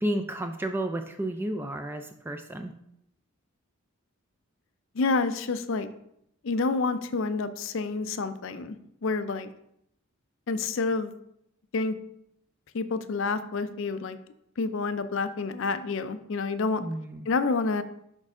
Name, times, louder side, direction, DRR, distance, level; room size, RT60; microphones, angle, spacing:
voice 1, 0.0-2.7 16.8-17.3, right 1 dB, 10° right, 6 dB, 0.3 m, -32 dB
voice 2, 4.9-5.9 6.4-8.8 9.0-9.5 10.5-11.1 11.7-12.0 12.7-14.2 14.6-16.8 17.3-17.8, left 4 dB, 60° left, 11 dB, 0.4 m, -28 dB
6.4 x 5.3 x 3.6 m, 0.76 s
head